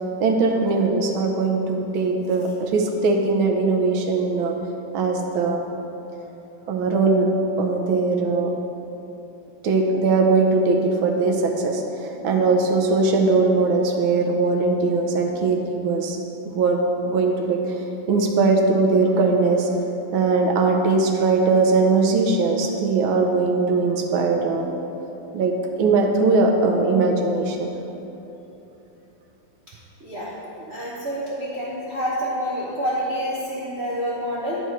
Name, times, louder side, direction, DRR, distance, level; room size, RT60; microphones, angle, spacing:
voice 1, 0.2-4.5 4.9-5.6 6.7-7.3 7.6-8.5 9.6-16.2 16.5-17.6 18.1-19.7 20.1-24.7 25.3-27.7, right 3 dB, 75° right, 2 dB, 1.5 m, -20 dB
voice 2, 30.0-30.3 30.7-34.6, equal, 50° right, -7 dB, 0.8 m, -27 dB
10.5 x 4.7 x 4.6 m, 3.0 s
omnidirectional pair, 2.4 m